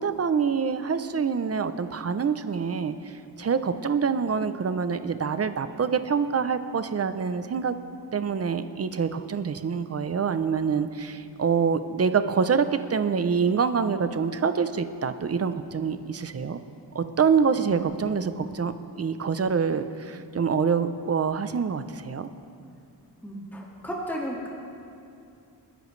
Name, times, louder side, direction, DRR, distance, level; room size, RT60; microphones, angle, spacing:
voice 1, 0.0-7.7 8.1-16.6 16.9-22.3, right 6 dB, 35° right, 11 dB, 0.6 m, -26 dB
voice 2, 17.6-18.0 23.2-24.5, equal, 5° left, -3 dB, 1.9 m, -34 dB
28.5 x 10.0 x 3.2 m, 2.5 s
wide cardioid pair, 145°, 41 cm